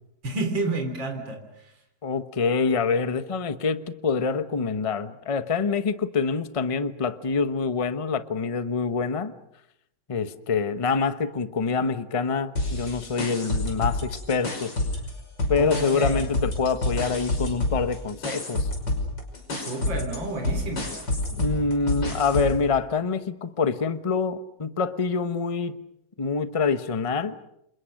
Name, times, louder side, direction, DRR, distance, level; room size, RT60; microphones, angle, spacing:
voice 1, 0.2-1.7 15.5-16.3 19.6-20.9, right 2 dB, 90° right, 5 dB, 4.1 m, -30 dB
voice 2, 2.0-9.3 10.1-14.7 15.5-18.7 21.3-25.7 26.2-27.4, left 5 dB, 25° left, 11 dB, 0.9 m, -26 dB
sound 1, 12.6-15.1 15.4-22.6, left 1 dB, 70° left, 6.2 m, -28 dB
29.5 x 27.0 x 6.6 m, 0.79 s
omnidirectional pair, 2.0 m